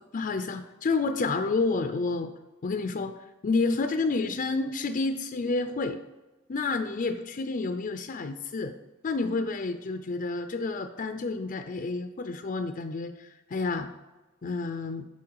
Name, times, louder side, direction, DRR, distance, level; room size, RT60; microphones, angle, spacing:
voice 1, 0.1-2.3 2.6-3.1 3.4-6.0 6.5-8.7 9.0-13.9 14.4-15.1, left 3 dB, 45° left, 7 dB, 0.5 m, -29 dB
8.5 x 5.7 x 4.7 m, 1.1 s
head